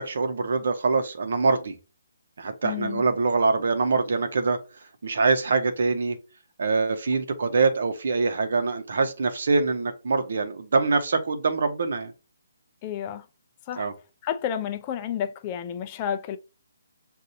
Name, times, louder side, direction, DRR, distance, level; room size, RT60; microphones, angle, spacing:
voice 1, 0.0-1.8 2.4-4.6 5.0-6.2 6.6-12.1 13.8-13.9, right 4 dB, 65° right, 0.9 m, -24 dB
voice 2, 2.6-3.0 12.8-13.3 13.7-13.9 14.2-16.4, left 9 dB, 30° left, 0.5 m, -31 dB
6.4 x 2.6 x 2.7 m
figure-of-eight pair, 150°, 0 cm